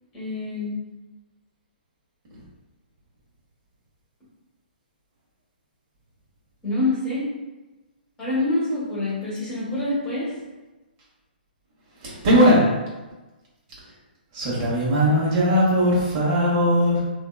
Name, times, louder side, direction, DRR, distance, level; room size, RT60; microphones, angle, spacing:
voice 1, 0.1-0.8 6.6-7.2 8.2-10.2, left 2 dB, 20° left, -9 dB, 1.4 m, -26 dB
voice 2, 12.0-12.6 14.3-17.1, equal, 35° right, -6 dB, 1.3 m, -19 dB
2.8 x 2.6 x 2.3 m, 1.1 s
figure-of-eight pair, 130°, 5 cm